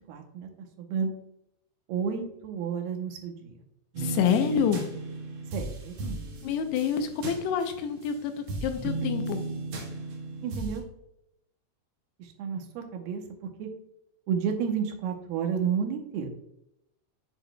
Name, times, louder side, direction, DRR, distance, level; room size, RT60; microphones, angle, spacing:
voice 1, 0.1-0.5 0.8-1.1 1.9-3.5 5.5-6.2 10.4-10.8 12.2-13.2 13.6-13.7 14.3-16.3, right 7 dB, 75° right, 4 dB, 2.7 m, -31 dB
sound 1, 3.9-8.1 8.5-10.8, right 2 dB, 60° right, 2.0 m, -35 dB
voice 2, 4.0-4.8 6.4-9.4, left 8 dB, 85° left, 7 dB, 2.9 m, -27 dB
7.9 x 6.8 x 2.2 m, 0.79 s
omnidirectional pair, 4.7 m